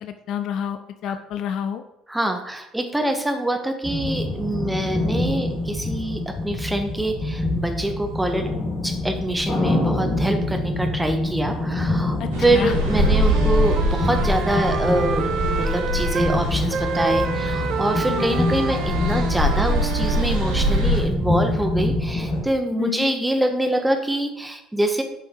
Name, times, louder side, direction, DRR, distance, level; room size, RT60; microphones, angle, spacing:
voice 1, 0.0-1.8 12.2-12.7 18.1-18.4 22.8-23.1, left 9 dB, 50° left, 9 dB, 0.5 m, -29 dB
voice 2, 2.1-8.5 8.8-25.0, right 1 dB, 5° right, 5 dB, 1.2 m, -25 dB
sound 1, 3.8-22.4, left 2 dB, 30° left, 2.3 m, -26 dB
sound 2, 12.3-21.0, equal, 70° right, 2.2 m, -24 dB
Wind instrument woodwind instrument, 12.8-16.4 16.7-20.9, right 6 dB, 45° right, 0.6 m, -29 dB
8.2 x 5.3 x 4.4 m, 0.87 s
figure-of-eight pair, 55°, 0 cm